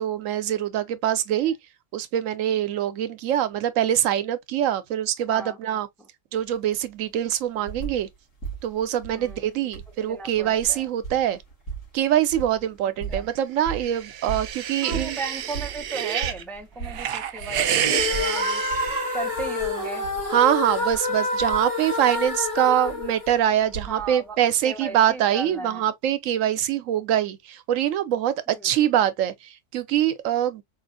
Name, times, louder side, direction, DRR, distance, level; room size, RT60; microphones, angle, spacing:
voice 1, 0.0-1.5 1.9-5.9 6.3-8.1 8.6-11.4 11.9-15.2 20.3-30.6, right 11 dB, 85° right, 1.0 m, -24 dB
voice 2, 5.3-6.1 9.1-9.5 10.0-10.9 13.1-13.3 14.8-18.6 19.1-20.1 23.9-25.8 28.5-28.7, right 3 dB, ahead, 0.4 m, -36 dB
sound 1, 6.3-6.4 6.7-8.1 8.4-24.4 25.4-25.5, right 5 dB, 85° left, 3.1 m, -38 dB
sound 2, 13.7-16.4 16.8-19.7, right 9 dB, 60° right, 0.7 m, -29 dB
sound 3, 17.8-24.0, left 3 dB, 30° left, 1.1 m, -28 dB
4.5 x 2.6 x 2.4 m
omnidirectional pair, 1.3 m